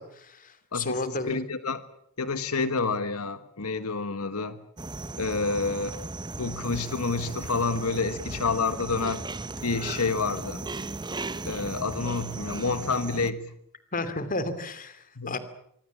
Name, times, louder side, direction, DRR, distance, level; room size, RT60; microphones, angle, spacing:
voice 1, 0.0-1.4 13.9-15.4, left 2 dB, 40° left, 12 dB, 2.7 m, -33 dB
voice 2, 0.7-1.8 2.2-4.6 5.2-6.0 6.4-9.2 9.6-10.7 11.5-13.5 15.2-15.4, left 4 dB, 90° left, 11 dB, 1.4 m, -29 dB
sound 1, 4.8-13.3, right 2 dB, 20° right, 1.0 m, -37 dB
25.5 x 24.0 x 7.4 m, 0.72 s
head